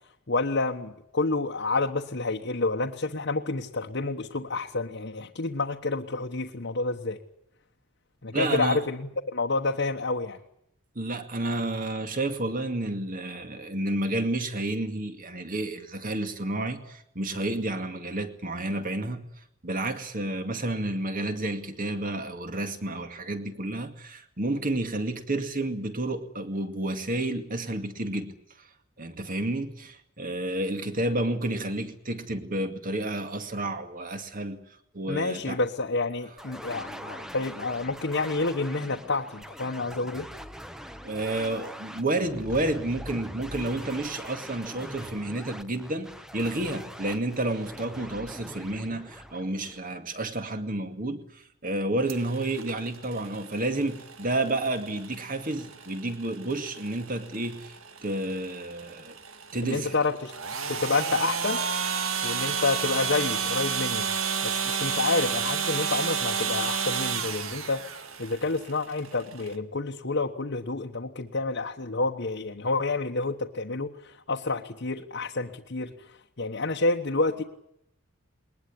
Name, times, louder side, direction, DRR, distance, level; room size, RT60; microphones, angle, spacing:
voice 1, 0.3-7.2 8.2-10.4 35.1-40.3 59.6-60.3 60.7-61.6 62.2-64.1 64.4-75.9 76.4-77.4, left 3 dB, 55° left, 1.3 m, -29 dB
voice 2, 8.3-8.8 11.0-19.3 19.6-28.3 28.6-28.7 29.0-34.6 34.9-35.6 41.0-59.2 59.5-60.0, right 1 dB, 40° right, 2.2 m, -30 dB
sound 1, 36.4-50.3, equal, ahead, 1.0 m, -42 dB
sound 2, 52.1-69.6, right 6 dB, 70° right, 1.9 m, -32 dB
21.0 x 20.0 x 9.9 m
head